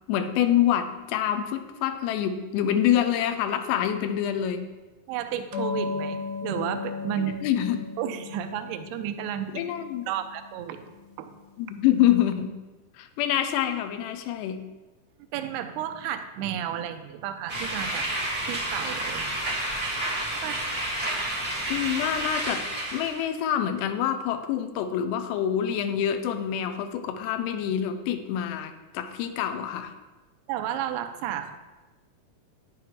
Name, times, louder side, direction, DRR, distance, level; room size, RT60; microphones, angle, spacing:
voice 1, 0.1-4.6 7.2-7.8 9.5-10.1 11.6-12.5 13.0-14.6 21.7-22.6 22.9-29.9, left 10 dB, 90° left, 9 dB, 2.9 m, -26 dB
voice 2, 5.1-7.5 8.0-9.6 10.1-11.3 15.3-18.1 18.4-19.6 20.4-20.6 30.5-31.6, right 10 dB, 85° right, 8 dB, 2.6 m, -32 dB
sound 1, 5.5-11.7, left 5 dB, 70° left, 2.4 m, -36 dB
sound 2, 17.5-23.2, right 1 dB, 35° right, 0.7 m, -30 dB
9.7 x 7.7 x 4.6 m, 1.2 s
omnidirectional pair, 4.8 m